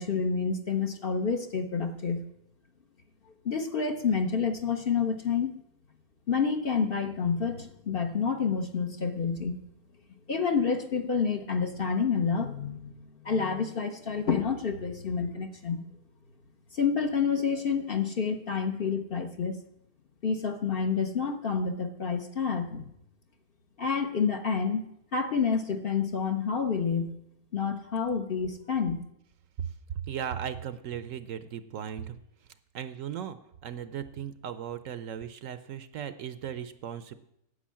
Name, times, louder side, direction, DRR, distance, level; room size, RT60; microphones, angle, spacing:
voice 1, 0.0-2.2 3.4-5.6 6.3-9.6 10.3-15.9 16.7-19.6 20.2-22.9 23.8-24.8 25.1-27.2 27.5-29.0, left 6 dB, 45° left, 6 dB, 0.9 m, -28 dB
voice 2, 30.1-32.2 32.7-37.2, right 9 dB, 65° right, 12 dB, 0.9 m, -37 dB
10.0 x 7.9 x 7.4 m, 0.79 s
omnidirectional pair, 1.5 m